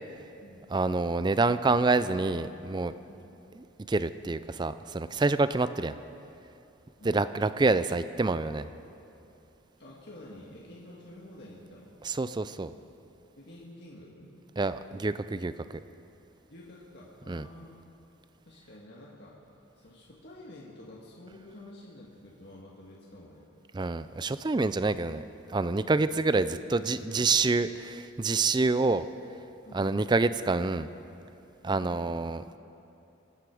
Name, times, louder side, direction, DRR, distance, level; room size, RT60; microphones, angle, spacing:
voice 1, 0.7-2.9 3.5-6.0 7.0-8.7 12.0-12.7 14.6-15.5 17.3-17.5 23.7-25.2 25.5-29.1 29.7-30.9 31.6-32.4, right 3 dB, 20° right, 13 dB, 0.3 m, -27 dB
voice 2, 9.8-11.9 13.4-14.3 16.5-17.8 18.4-19.4 19.8-23.5 26.6-27.3 29.6-30.1, left 1 dB, 55° left, -5 dB, 1.7 m, -49 dB
25.0 x 9.8 x 4.8 m, 2.8 s
head